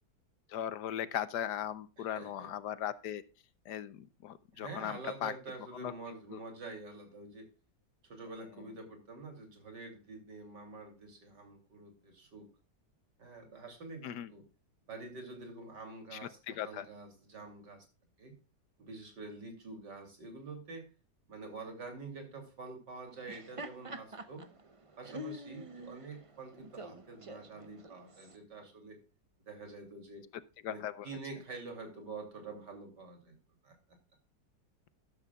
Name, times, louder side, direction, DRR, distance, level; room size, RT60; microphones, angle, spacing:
voice 1, 0.5-3.2 3.7-5.3 5.8-5.9 6.3-6.4 14.0-14.3 16.1-16.9 30.6-31.1, left 10 dB, 70° left, 16 dB, 1.3 m, -38 dB
voice 2, 2.0-2.5 4.5-7.5 8.0-12.5 13.2-14.4 14.9-17.9 18.2-18.4 18.8-20.9 21.3-24.5 25.0-29.0 29.5-30.2 30.7-33.4 33.6-33.8, right 3 dB, 70° right, 5 dB, 3.5 m, -47 dB
Laughter, 23.1-28.4, equal, 25° right, 0.7 m, -47 dB
12.5 x 12.0 x 2.3 m, 0.32 s
omnidirectional pair, 1.9 m